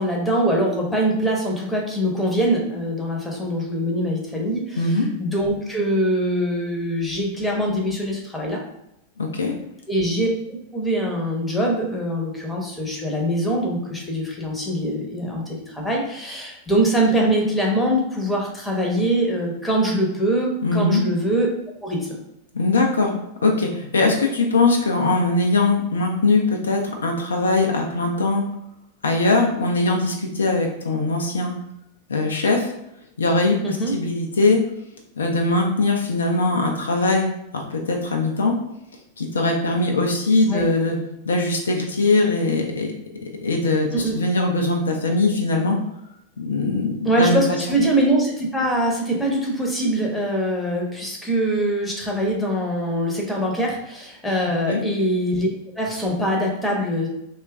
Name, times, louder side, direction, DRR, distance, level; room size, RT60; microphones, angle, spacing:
voice 1, 0.0-8.6 9.9-10.3 10.7-21.5 21.8-22.2 33.6-33.9 40.5-40.7 43.9-44.2 47.0-55.5 55.8-57.1, right 1 dB, 5° left, -1 dB, 0.8 m, -23 dB
voice 2, 4.8-5.1 9.2-9.5 20.6-21.0 22.5-23.1 23.4-28.4 29.0-31.5 32.1-32.7 33.2-34.6 35.2-37.3 37.5-38.5 39.2-41.0 41.3-42.9 43.4-45.8 46.4-47.4 47.7-47.8 54.7-54.8, left 2 dB, 70° left, 1 dB, 0.4 m, -21 dB
2.9 x 2.3 x 3.4 m, 0.81 s
figure-of-eight pair, 90°, 0 cm